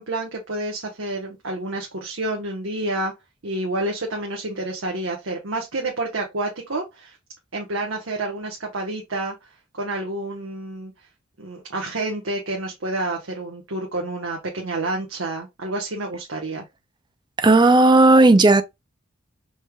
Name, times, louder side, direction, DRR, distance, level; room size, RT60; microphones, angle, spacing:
voice 1, 0.0-3.1 3.4-7.2 7.5-9.3 9.7-10.9 11.4-16.6, right 2 dB, 70° right, 1.1 m, -29 dB
voice 2, 17.4-18.6, right 2 dB, 20° right, 0.4 m, -13 dB
5.3 x 3.4 x 2.2 m
head